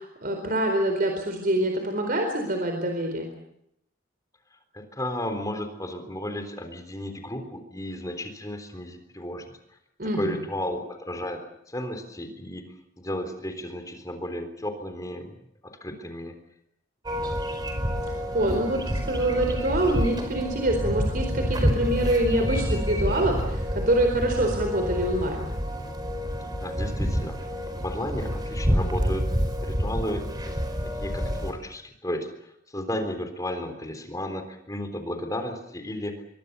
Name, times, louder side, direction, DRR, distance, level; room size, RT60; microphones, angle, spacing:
voice 1, 0.0-3.3 10.0-10.4 18.0-25.5, right 1 dB, 45° right, 4 dB, 4.3 m, -25 dB
voice 2, 4.5-9.8 10.1-11.4 11.7-12.7 13.0-16.3 17.2-17.3 26.6-27.4 27.7-29.3 29.6-30.5 30.8-36.2, left 1 dB, 20° left, 7 dB, 3.8 m, -34 dB
sound 1, 17.0-31.5, equal, 20° right, 4.7 m, -28 dB
27.5 x 23.5 x 6.9 m, 0.77 s
head